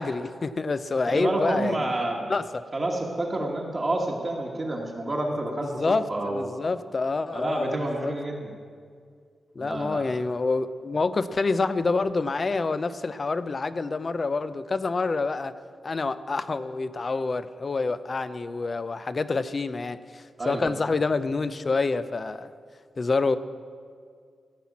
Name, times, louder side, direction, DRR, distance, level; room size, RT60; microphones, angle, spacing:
voice 1, 0.0-1.9 2.3-2.6 5.8-6.1 6.3-8.1 9.6-15.5 15.8-22.5 23.0-23.4, left 3 dB, 35° left, 14 dB, 0.4 m, -27 dB
voice 2, 1.1-2.3 2.7-6.5 7.3-8.6 9.6-10.1 20.4-20.8, right 1 dB, 25° right, -1 dB, 1.2 m, -29 dB
14.5 x 5.9 x 8.4 m, 2.1 s
wide cardioid pair, 155°, 0 cm